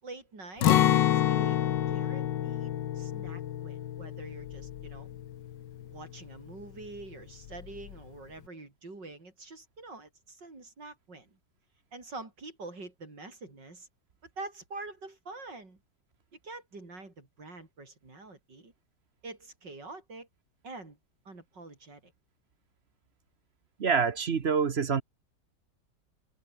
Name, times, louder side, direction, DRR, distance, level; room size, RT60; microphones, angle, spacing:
voice 1, 0.0-5.1 5.9-11.4 11.9-13.9 14.4-15.8 16.4-18.7 19.2-20.3 20.6-21.0 21.3-22.1, right 3 dB, 80° right, 6.1 m, -46 dB
Acoustic guitar, 0.6-6.5 6.8-7.0 7.5-7.9, left 11 dB, 85° left, 1.7 m, -28 dB
voice 2, 23.8-25.0, right 6 dB, 45° right, 1.1 m, -26 dB
omnidirectional pair, 1.9 m